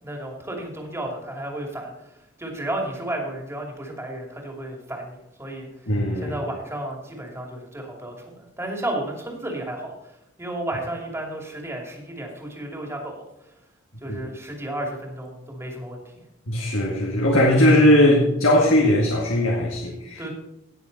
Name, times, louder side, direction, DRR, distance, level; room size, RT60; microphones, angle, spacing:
voice 1, 0.0-5.7 6.2-9.9 10.4-13.3 14.0-16.1 20.2-20.3, right 1 dB, 15° right, 0 dB, 2.6 m, -33 dB
voice 2, 5.9-6.3 14.1-14.2 16.5-20.3, left 1 dB, 90° left, -2 dB, 2.1 m, -19 dB
18.0 x 6.9 x 4.1 m, 0.87 s
head